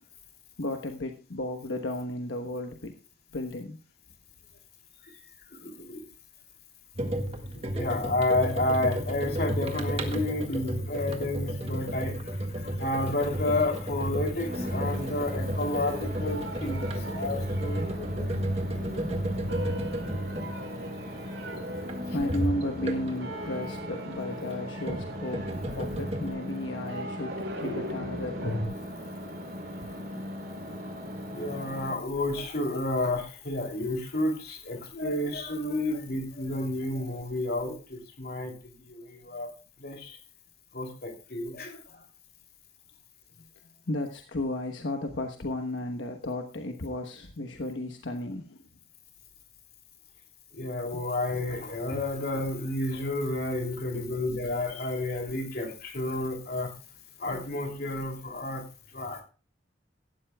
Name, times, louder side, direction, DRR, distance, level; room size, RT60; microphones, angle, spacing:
voice 1, 0.6-3.0 3.3-3.8 7.5-7.9 22.1-28.6 29.9-30.0 32.6-32.7 43.6-48.7 50.9-51.0, left 1 dB, 80° left, 4 dB, 1.1 m, -34 dB
voice 2, 5.5-6.1 7.7-19.3 22.1-22.2 31.3-39.5 39.8-40.2 40.7-42.0 50.5-56.7 57.2-58.6 58.9-59.2, left 2 dB, 55° left, 3 dB, 3.0 m, -31 dB
sound 1, 6.9-23.3 24.4-26.3, right 1 dB, 35° right, 1.7 m, -33 dB
sound 2, 14.4-15.5 15.7-19.0 19.5-22.9 23.2-28.7, equal, 75° right, 5.9 m, -40 dB
sound 3, 14.5-31.9, left 1 dB, 50° right, 3.4 m, -39 dB
16.5 x 12.5 x 2.3 m, 0.35 s
head